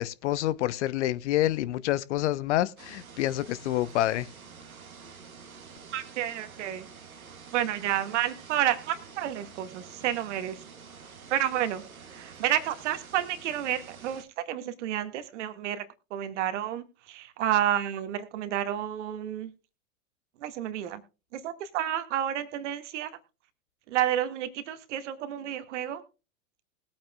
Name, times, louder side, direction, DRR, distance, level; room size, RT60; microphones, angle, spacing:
voice 1, 0.0-4.3, left 14 dB, 55° left, 0.9 m, -27 dB
sound 1, 2.8-14.2, right 6 dB, 85° right, 1.8 m, -48 dB
voice 2, 5.9-6.9 7.5-10.6 11.3-19.5 20.4-21.0 21.3-23.1 23.9-26.0, right 11 dB, 55° right, 1.9 m, -30 dB
20.5 x 8.7 x 2.3 m
figure-of-eight pair, 100°, 41 cm